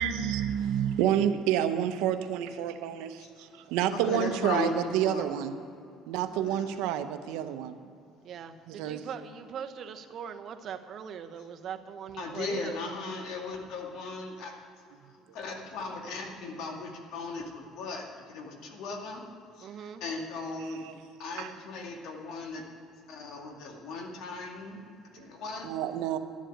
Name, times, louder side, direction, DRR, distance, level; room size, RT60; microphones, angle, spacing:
voice 1, 0.0-5.5 6.1-7.8 8.7-9.1 20.6-20.9 21.4-21.5 25.6-26.2, right 10 dB, 85° right, 9 dB, 0.8 m, -29 dB
voice 2, 3.9-5.3 6.4-6.6 12.2-14.6 15.3-19.3 19.6-20.8 21.2-22.6 23.1-24.9 25.1-25.7, left 3 dB, 70° left, 2 dB, 2.1 m, -37 dB
voice 3, 8.2-13.0 19.6-20.0, right 8 dB, 50° right, 7 dB, 0.9 m, -41 dB
11.5 x 7.5 x 9.0 m, 2.6 s
cardioid pair, 110°, 0 cm